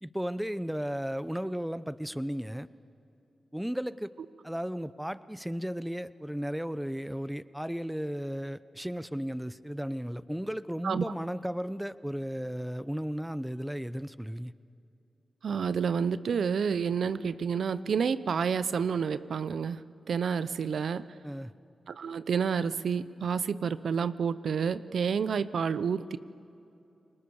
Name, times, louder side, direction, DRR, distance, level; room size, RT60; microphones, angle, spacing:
voice 1, 0.0-2.7 3.5-4.1 4.4-14.5 21.2-21.5, equal, 5° right, 15 dB, 0.8 m, -35 dB
voice 2, 15.4-21.0 21.9-26.2, right 6 dB, 75° right, 15 dB, 0.6 m, -29 dB
30.0 x 21.0 x 7.1 m, 2.7 s
cardioid pair, 45°, 0 cm